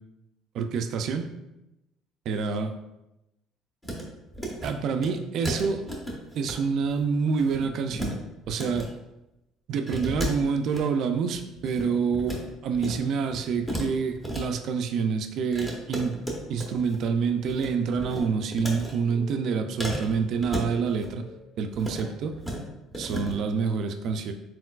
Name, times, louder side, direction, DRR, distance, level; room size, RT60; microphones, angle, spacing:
voice 1, 0.5-1.3 2.3-2.7 4.6-5.9 6.3-8.1 8.5-8.9 9.7-16.2 16.5-21.2 21.6-22.3 23.0-24.3, right 5 dB, 50° right, 6 dB, 0.3 m, -27 dB
sound 1, 3.8-4.0 4.3-4.7 5.0-5.1 5.4-6.5 6.8-7.0 7.3-8.1 8.4-8.9 9.9-10.8 11.3-12.4 12.7-13.0 13.3-14.4 15.5-17.0 17.3-17.7 18.0-18.9 19.8-21.1 21.7-22.1 22.3-22.6 22.9-23.3, equal, 5° left, 0.7 m, -34 dB
sound 2, 19.1-22.3, left 2 dB, 40° left, 1.3 m, -48 dB
4.3 x 3.9 x 2.3 m, 0.92 s
cardioid pair, 170°, 0 cm